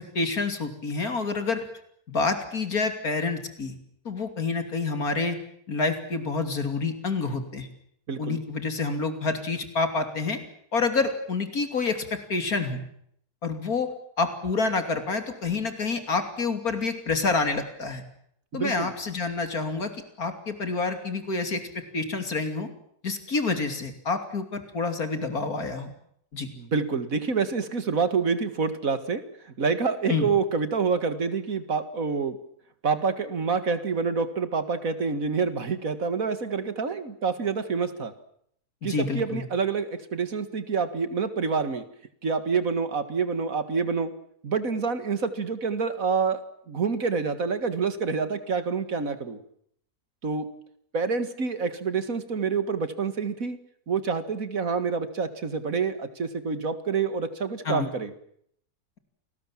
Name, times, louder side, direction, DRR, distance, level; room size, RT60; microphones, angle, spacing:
voice 1, 0.1-1.6 2.1-3.7 4.0-5.4 5.7-7.7 8.2-10.4 10.7-12.9 13.4-13.9 14.2-18.0 18.5-19.9 20.2-21.6 21.9-22.7 23.0-25.9 26.3-26.5 30.1-30.3 38.8-39.4 57.6-57.9, left 4 dB, 70° left, 7 dB, 3.3 m, -28 dB
voice 2, 8.1-8.4 18.5-18.9 26.6-32.4 32.8-38.1 38.8-41.8 42.2-44.1 44.4-49.4 50.2-50.5 50.9-53.6 53.9-58.1, right 5 dB, 65° right, 11 dB, 2.3 m, -27 dB
29.0 x 20.0 x 7.5 m, 0.69 s
omnidirectional pair, 1.6 m